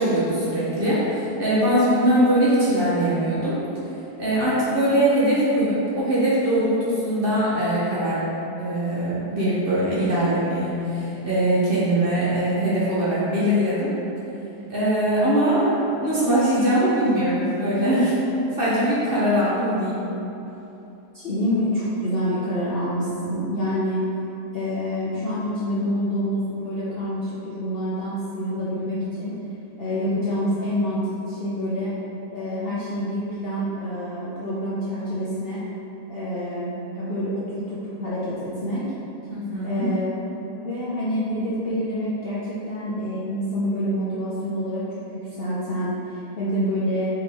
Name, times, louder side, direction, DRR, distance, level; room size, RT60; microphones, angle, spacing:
voice 1, 0.0-3.6 4.2-8.2 8.6-13.9 14.7-18.1 18.6-20.0 39.3-39.9, right 1 dB, 40° right, -10 dB, 0.9 m, -21 dB
voice 2, 21.1-24.0 24.5-29.4 29.8-31.9 32.3-35.6 36.1-38.9 39.6-40.1 40.5-44.8 45.3-47.1, equal, 55° left, -10 dB, 0.7 m, -27 dB
5.1 x 3.0 x 3.4 m, 2.9 s
omnidirectional pair, 1.7 m